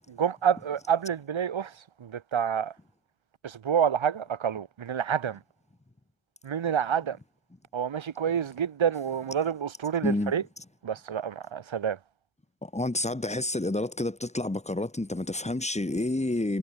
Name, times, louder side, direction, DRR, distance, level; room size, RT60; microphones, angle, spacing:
voice 1, 0.1-1.7 2.0-2.7 3.4-5.4 6.4-7.2 7.7-10.4 10.8-12.0, right 8 dB, 75° right, 6.6 m, -28 dB
voice 2, 12.6-16.6, left 2 dB, 15° left, 4.4 m, -29 dB
wide cardioid pair, 120°, 47 cm